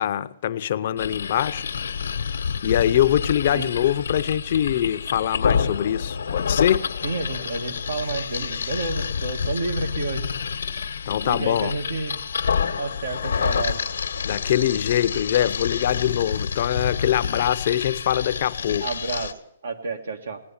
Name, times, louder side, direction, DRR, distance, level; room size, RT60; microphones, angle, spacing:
voice 1, 0.0-1.7 2.6-6.9 11.1-11.7 14.2-18.9, left 11 dB, 45° left, 0.6 m, -23 dB
sound 1, 1.0-19.3, left 6 dB, 85° left, 1.1 m, -28 dB
voice 2, 7.0-10.3 11.2-12.2 12.8-13.8 18.8-20.4, right 3 dB, 80° right, 1.8 m, -30 dB
18.5 x 10.0 x 7.1 m
hypercardioid pair, 160°, 0 cm